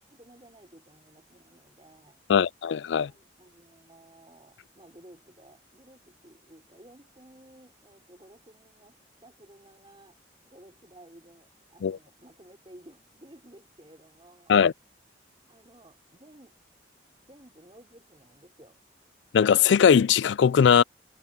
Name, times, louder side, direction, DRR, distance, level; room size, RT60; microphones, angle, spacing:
voice 1, 0.1-2.2 3.0-10.2 10.5-14.5 15.5-16.6 17.2-18.8, right 1 dB, 25° right, 5.4 m, -54 dB
voice 2, 2.3-3.1 11.8-12.0 14.5-14.7 19.3-20.8, left 7 dB, 70° left, 0.3 m, -20 dB
head